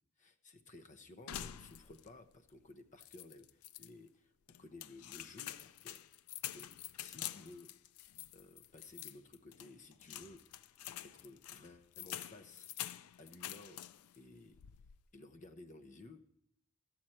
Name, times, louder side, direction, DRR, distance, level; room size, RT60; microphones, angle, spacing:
voice 1, 0.2-4.3 4.6-6.0 6.5-6.7 7.0-7.7 8.3-10.6 11.0-12.7 13.2-13.8 14.1-14.6 15.1-16.2, left 2 dB, 35° left, 7 dB, 0.7 m, -55 dB
sound 1, 1.3-2.2 2.5-2.6 3.0-3.9 4.5-14.2 14.5-15.0, left 12 dB, 85° left, 0.4 m, -47 dB
12.5 x 7.7 x 4.3 m, 0.76 s
head